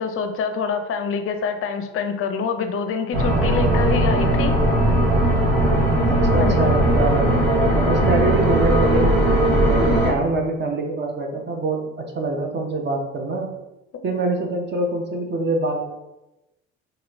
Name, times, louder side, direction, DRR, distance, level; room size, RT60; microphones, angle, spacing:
voice 1, 0.0-4.5 6.3-6.6, left 6 dB, 40° left, 7 dB, 0.5 m, -26 dB
sound 1, 3.1-10.1, right 1 dB, 90° right, 0.9 m, -18 dB
voice 2, 6.0-9.2 9.7-13.5 14.0-15.9, right 2 dB, 35° right, 2 dB, 0.6 m, -25 dB
3.0 x 2.5 x 2.9 m, 0.97 s
hypercardioid pair, 60°, 33 cm